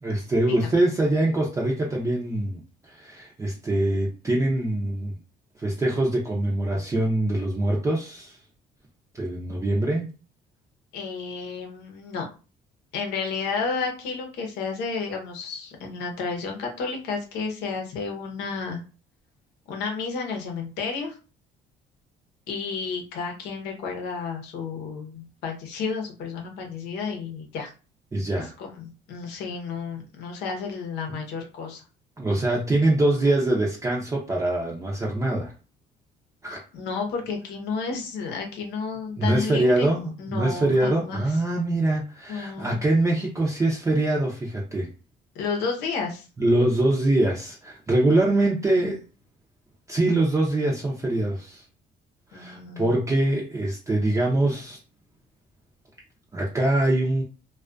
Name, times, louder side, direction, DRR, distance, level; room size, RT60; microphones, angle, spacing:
voice 1, 0.0-5.2 5.6-8.4 9.1-10.1 28.1-28.5 31.1-31.2 32.2-35.5 36.4-36.6 39.2-44.9 46.4-49.0 49.9-51.6 52.3-54.8 56.3-57.2, right 1 dB, 20° right, 0.5 m, -24 dB
voice 2, 10.9-12.3 12.9-18.8 19.7-21.2 22.5-27.7 28.4-31.8 36.7-39.9 40.2-41.2 42.3-42.8 45.3-46.3 52.3-53.0, left 5 dB, 90° left, 0.8 m, -31 dB
2.3 x 2.2 x 2.4 m
cardioid pair, 110°, 17 cm